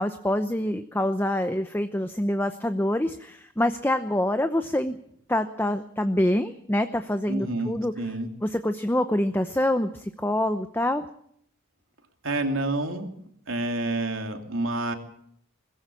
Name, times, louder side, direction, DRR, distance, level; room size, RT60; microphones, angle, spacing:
voice 1, 0.0-5.0 5.3-7.9 8.4-11.0, left 1 dB, 10° left, 9 dB, 0.7 m, -26 dB
voice 2, 7.3-8.3 12.2-13.1 13.5-14.9, right 2 dB, 75° right, 4 dB, 2.9 m, -28 dB
21.0 x 15.5 x 8.5 m, 0.68 s
head